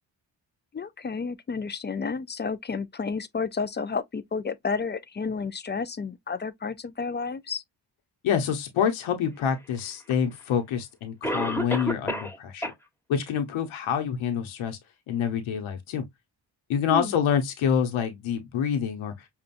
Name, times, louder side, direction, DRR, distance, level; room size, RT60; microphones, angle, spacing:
voice 1, 0.7-7.6 16.9-17.1, left 5 dB, 25° left, 0.4 m, -31 dB
voice 2, 8.2-12.7 13.1-14.8 15.1-16.0 16.7-19.1, left 8 dB, 90° left, 0.9 m, -27 dB
Cough, 10.1-10.2 11.2-12.4 12.6-12.7 13.3-13.4 13.9-14.0, equal, 5° left, 1.2 m, -29 dB
5.3 x 2.4 x 2.5 m
cardioid pair, 70°, 46 cm